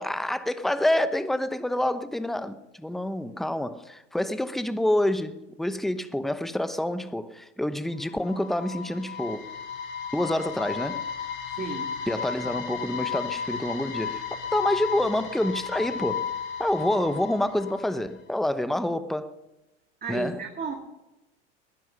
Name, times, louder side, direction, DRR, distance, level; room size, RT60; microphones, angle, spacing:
voice 1, 0.0-9.4 10.1-11.0 12.1-14.2 14.5-16.3 16.6-19.3 20.1-20.4, left 1 dB, ahead, 0.9 m, -27 dB
sound 1, 8.0-18.1, left 7 dB, 35° left, 5.3 m, -34 dB
voice 2, 11.6-11.9 20.0-20.8, right 5 dB, 25° right, 2.2 m, -33 dB
21.0 x 10.5 x 5.7 m
hypercardioid pair, 90°, 35 cm